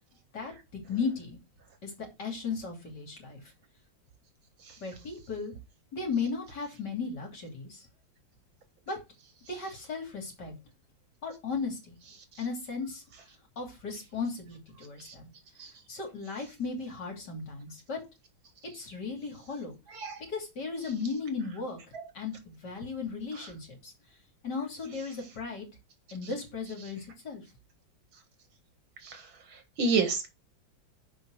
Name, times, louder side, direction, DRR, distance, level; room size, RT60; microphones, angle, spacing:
voice 1, 0.3-1.4 1.8-3.5 4.8-5.5 5.9-7.9 8.9-9.0 9.5-10.5 11.2-12.0 12.4-13.0 13.6-15.3 15.9-18.0 18.7-19.7 20.3-21.8 22.1-23.9 24.4-25.7 26.1-27.4, left 4 dB, 60° left, 2 dB, 3.6 m, -36 dB
voice 2, 19.9-20.2 29.0-30.3, right 4 dB, 80° right, 7 dB, 2.6 m, -30 dB
6.7 x 5.4 x 6.4 m, 0.24 s
omnidirectional pair, 2.1 m